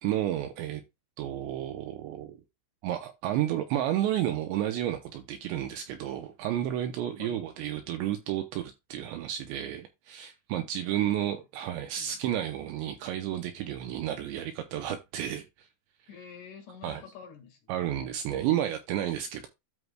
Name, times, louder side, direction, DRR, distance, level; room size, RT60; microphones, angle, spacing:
voice 1, 0.0-0.8 1.2-2.4 2.8-15.7 16.8-17.0 17.7-19.5, right 12 dB, 80° right, 2.6 m, -31 dB
voice 2, 10.9-11.4 11.7-12.2 16.1-18.1, left 6 dB, 65° left, 4.0 m, -49 dB
13.0 x 4.7 x 2.3 m
omnidirectional pair, 5.8 m